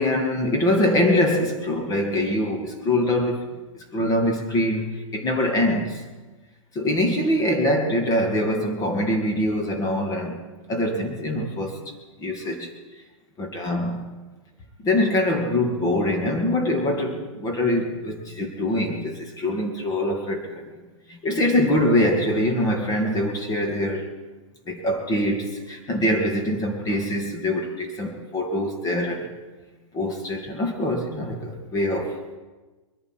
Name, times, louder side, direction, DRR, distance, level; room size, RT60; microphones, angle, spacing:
voice 1, 0.0-6.1 6.7-10.4 10.7-11.8 12.2-12.7 13.4-14.0 14.8-20.7 21.1-24.1 24.7-29.3 29.9-32.2, left 1 dB, 20° left, 3 dB, 2.2 m, -24 dB
22.0 x 11.0 x 4.6 m, 1.2 s
hypercardioid pair, 120°, 17 cm